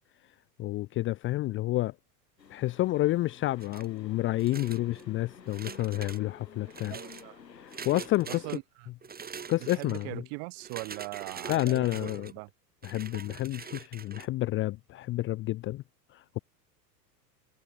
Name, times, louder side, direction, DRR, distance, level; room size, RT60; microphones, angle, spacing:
voice 1, 0.6-2.0 2.5-7.0 7.6-8.4 9.5-10.2 11.5-12.3 12.8-15.8 16.1-16.4, left 16 dB, 25° left, 0.7 m, -30 dB
sound 1, 2.4-8.6, left 6 dB, 75° left, 6.2 m, -51 dB
sound 2, 3.6-4.0 4.4-5.0 5.5-6.2 6.7-7.2 7.7-8.6 9.0-10.0 10.6-12.3 12.8-14.3, right 6 dB, 20° right, 3.5 m, -44 dB
voice 2, 6.9-7.4 8.3-8.6 9.7-12.5, right 40 dB or more, 45° right, 2.4 m, -40 dB
figure-of-eight pair, 85°, 50 cm